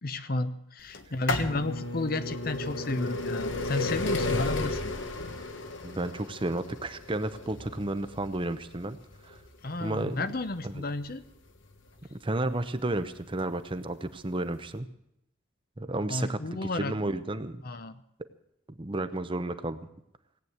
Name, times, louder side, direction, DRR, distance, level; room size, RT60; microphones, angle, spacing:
voice 1, 0.0-4.9 9.6-11.2 16.1-17.1 17.6-18.0, left 2 dB, 50° left, 12 dB, 0.8 m, -32 dB
sound 1, 0.9-12.6 13.4-13.5 14.5-14.6 14.8-14.9, left 2 dB, 75° left, 1.5 m, -34 dB
voice 2, 5.8-9.0 9.2-9.4 9.8-10.3 10.6-10.8 12.1-14.9 15.8-17.6 18.8-19.9, right 2 dB, 25° right, 11 dB, 0.8 m, -32 dB
17.5 x 9.0 x 8.0 m, 0.76 s
head